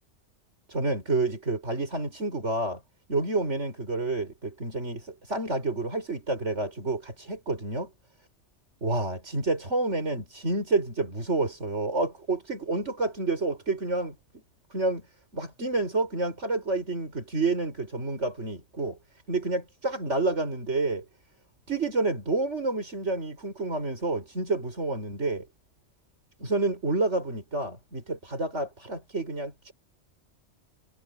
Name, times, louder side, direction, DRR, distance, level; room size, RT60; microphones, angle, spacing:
voice 1, 0.7-2.8 3.1-7.9 8.8-14.1 14.7-15.1 15.3-19.0 19.3-21.0 21.7-25.5 26.4-29.7, right 2 dB, 80° right, 6.0 m, -29 dB
omnidirectional pair, 1.2 m